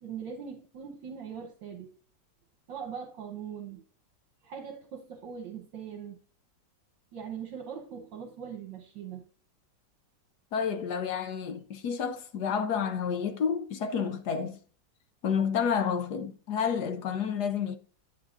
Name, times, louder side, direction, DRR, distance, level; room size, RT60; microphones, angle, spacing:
voice 1, 0.0-1.9 2.7-3.8 4.4-6.2 7.1-9.3, right 7 dB, 75° right, 1.7 m, -41 dB
voice 2, 10.5-14.6 15.2-17.8, left 7 dB, 65° left, 1.3 m, -30 dB
9.7 x 9.5 x 2.5 m
omnidirectional pair, 2.0 m